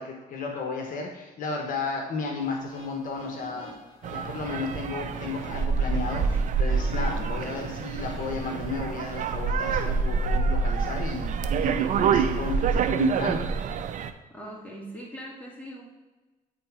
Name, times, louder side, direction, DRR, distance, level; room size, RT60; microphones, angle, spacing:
voice 1, 0.0-3.8 4.1-11.3 11.6-13.4, left 4 dB, 60° left, 2 dB, 1.0 m, -33 dB
sound 1, 2.4-8.6, left 1 dB, 40° left, 2.5 m, -46 dB
sound 2, 4.0-14.1, right 5 dB, 60° right, 0.5 m, -27 dB
voice 2, 14.3-15.8, equal, 10° left, -4 dB, 2.2 m, -40 dB
8.8 x 3.9 x 4.7 m, 1.2 s
cardioid pair, 95°, 15 cm